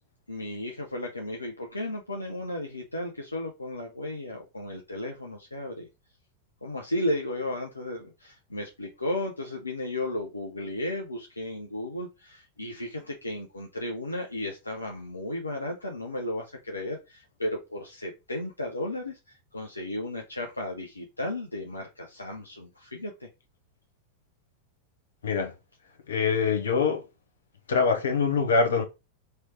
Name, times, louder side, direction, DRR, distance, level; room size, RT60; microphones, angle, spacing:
voice 1, 0.3-5.9 6.6-23.3, left 1 dB, 80° left, 0.7 m, -34 dB
voice 2, 26.1-27.0 27.7-28.8, left 5 dB, 65° left, 1.1 m, -24 dB
3.2 x 3.0 x 4.4 m
figure-of-eight pair, 90°, 0 cm